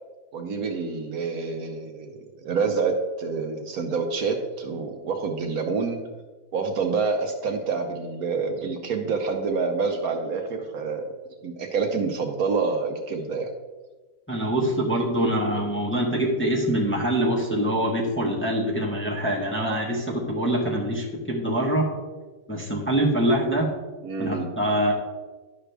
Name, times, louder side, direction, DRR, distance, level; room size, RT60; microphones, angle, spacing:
voice 1, 0.3-6.0 6.5-11.1 11.4-13.5 24.0-24.5, right 4 dB, 65° right, 4 dB, 1.2 m, -27 dB
voice 2, 14.3-21.9 22.5-23.7 24.2-24.9, right 1 dB, 10° left, -3 dB, 1.1 m, -24 dB
11.0 x 6.1 x 3.4 m, 1.3 s
omnidirectional pair, 1.7 m